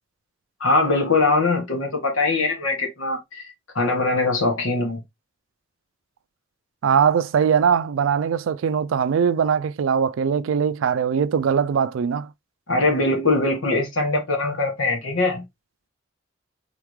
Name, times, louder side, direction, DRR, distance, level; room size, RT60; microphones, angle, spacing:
voice 1, 0.6-3.4 3.7-5.0 12.7-15.4, left 3 dB, 85° left, 1.6 m, -22 dB
voice 2, 6.8-12.3, right 7 dB, 80° right, 0.3 m, -21 dB
3.6 x 3.5 x 3.1 m
head